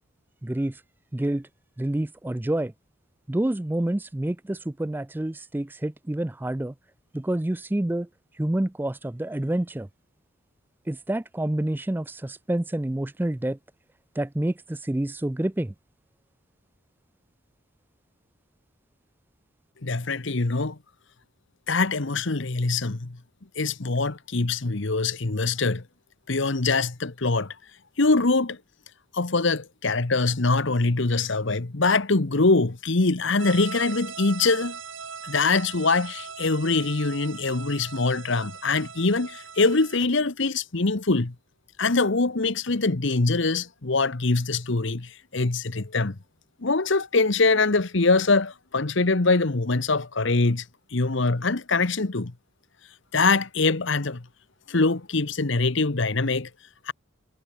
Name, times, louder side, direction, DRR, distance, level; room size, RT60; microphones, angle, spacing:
voice 1, 0.4-0.8 1.1-1.5 1.8-2.7 3.3-6.7 7.1-8.1 8.3-9.9 10.9-13.6 14.2-15.7, right 1 dB, 10° right, 0.3 m, -28 dB
voice 2, 19.8-20.8 21.7-23.2 23.6-25.8 26.3-27.5 28.0-28.6 29.1-34.8 35.2-41.3 41.8-46.2 46.6-50.6 50.9-52.3 53.1-54.2 54.7-56.5 56.9-57.0, left 3 dB, 60° left, 1.1 m, -23 dB
sound 1, 33.4-40.0, right 6 dB, 65° right, 3.4 m, -40 dB
head